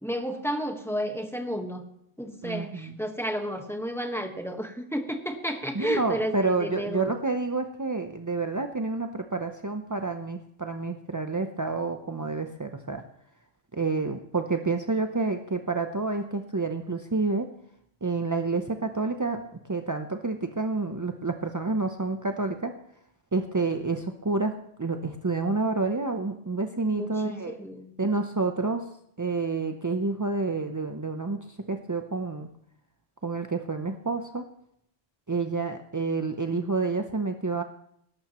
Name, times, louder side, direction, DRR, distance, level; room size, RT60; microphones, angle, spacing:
voice 1, 0.0-1.8 2.2-7.1 26.9-27.9, equal, ahead, 4 dB, 1.2 m, -32 dB
voice 2, 2.4-3.0 5.7-13.0 13.7-17.5 18.0-19.4 19.7-22.7 23.3-27.6 28.0-28.8 29.2-32.5 33.2-34.4 35.3-37.6, right 3 dB, 25° right, 5 dB, 0.4 m, -29 dB
20.5 x 11.5 x 3.0 m, 0.71 s
omnidirectional pair, 1.3 m